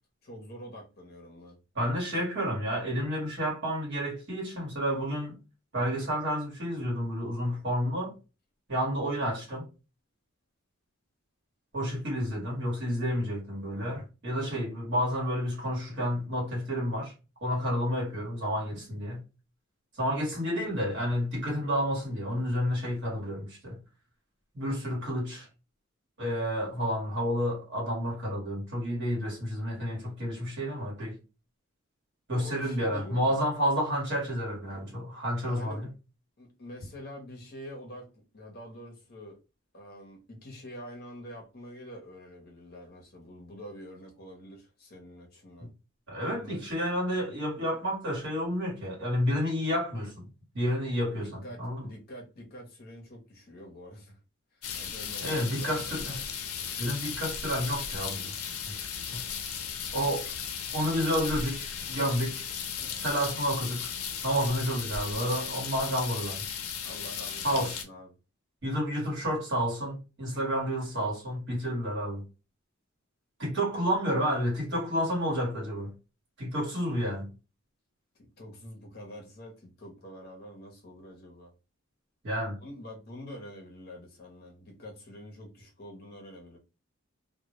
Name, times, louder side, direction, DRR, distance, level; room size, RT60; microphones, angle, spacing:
voice 1, 0.2-1.6 32.3-33.5 35.4-35.8 36.4-39.4 39.7-45.7 46.3-46.6 51.1-54.2 54.5-56.3 62.8-63.0 66.8-68.1 78.4-81.5 82.6-86.6, equal, 45° left, 0.7 m, -46 dB
voice 2, 1.7-5.4 5.7-8.2 8.7-9.7 11.7-17.1 17.4-19.2 20.0-23.8 24.5-25.5 26.2-31.2 32.3-35.9 45.6-45.7 46.1-50.3 50.5-51.9 55.2-56.2 56.8-58.3 58.7-58.8 59.1-59.3 59.9-60.3 60.7-62.5 63.0-63.9 64.2-66.5 67.4-67.8 68.6-72.2 73.4-75.9 76.4-77.3 82.2-82.6, equal, 50° right, 1.1 m, -30 dB
sound 1, 54.6-67.8, left 7 dB, 85° left, 0.5 m, -36 dB
2.1 x 2.1 x 2.8 m
head